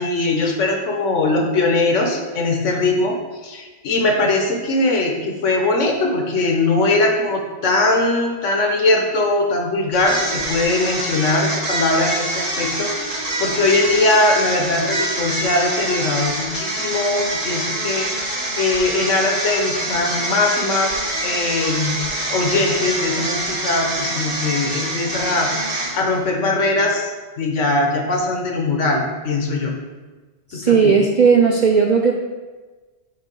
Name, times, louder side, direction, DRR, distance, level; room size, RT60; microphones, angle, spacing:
voice 1, 0.0-18.1 18.6-22.0 22.3-25.5 25.9-29.7 30.5-30.9, left 2 dB, 75° left, 2 dB, 1.3 m, -20 dB
sound 1, 9.9-26.2, right 1 dB, 35° right, 1.0 m, -25 dB
voice 2, 30.5-32.1, right 5 dB, 65° right, 2 dB, 0.4 m, -15 dB
7.3 x 2.7 x 5.3 m, 1.3 s
omnidirectional pair, 1.3 m